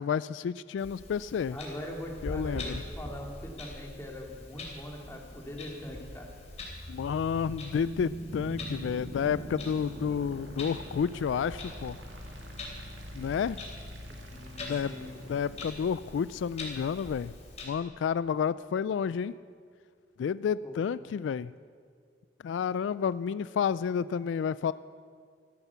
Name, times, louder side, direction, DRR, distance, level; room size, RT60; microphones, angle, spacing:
voice 1, 0.0-1.6 2.2-2.8 6.9-12.0 13.1-13.6 14.7-14.9 15.3-17.3 17.6-19.4 20.2-21.5 22.4-24.7, left 7 dB, 80° left, 17 dB, 0.3 m, -30 dB
Clock, 0.8-17.6, left 2 dB, 35° left, 3.2 m, -44 dB
voice 2, 1.5-6.3 14.1-15.1 20.6-20.8, left 1 dB, 15° left, 0 dB, 2.3 m, -42 dB
sound 1, 5.9-17.9, right 1 dB, 85° right, 2.0 m, -44 dB
14.0 x 13.5 x 6.9 m, 2.2 s
head